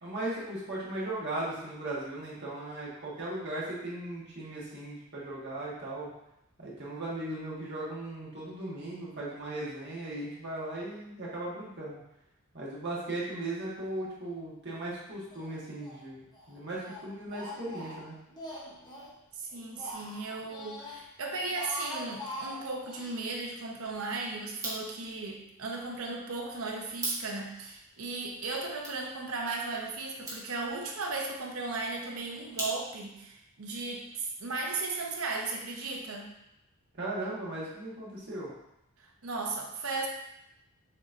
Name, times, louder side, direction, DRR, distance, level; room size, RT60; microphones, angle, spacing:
voice 1, 0.0-6.1 6.6-12.0 12.5-18.2 36.9-38.5, right 1 dB, 50° right, -6 dB, 1.4 m, -37 dB
Speech, 15.3-16.0 16.3-19.1 19.5-21.0 21.4-23.2, equal, 20° left, 0.9 m, -43 dB
voice 2, 19.4-36.3 39.0-40.1, right 3 dB, 75° right, 1 dB, 0.8 m, -36 dB
sound 1, 24.5-33.2, right 1 dB, 15° right, 1.1 m, -44 dB
6.6 x 3.1 x 2.6 m, 0.84 s
head